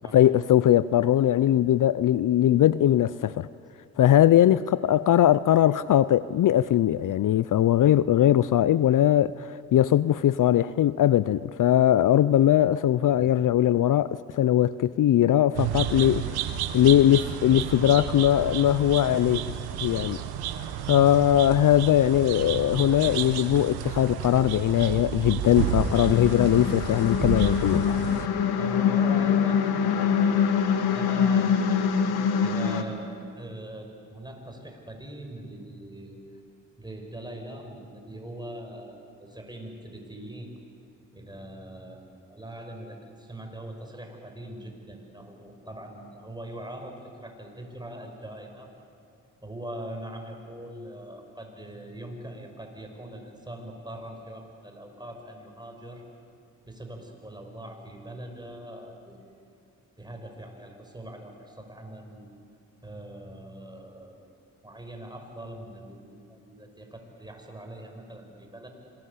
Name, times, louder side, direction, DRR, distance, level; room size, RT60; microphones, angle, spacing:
voice 1, 0.1-3.5 4.0-16.4 16.7-19.4 19.8-20.2 20.9-28.0, left 11 dB, 55° left, 0.6 m, -20 dB
sound 1, 15.5-28.3, right 10 dB, 85° right, 1.1 m, -31 dB
sound 2, 25.6-32.8, left 7 dB, 85° left, 1.6 m, -24 dB
voice 2, 28.6-31.9 32.4-36.2 36.8-40.5 41.1-48.7 49.4-56.0 56.7-59.3 60.0-62.3 62.8-64.3 64.6-68.7, right 1 dB, 10° right, 6.1 m, -42 dB
25.5 x 21.0 x 8.5 m
supercardioid pair, 50°, 37 cm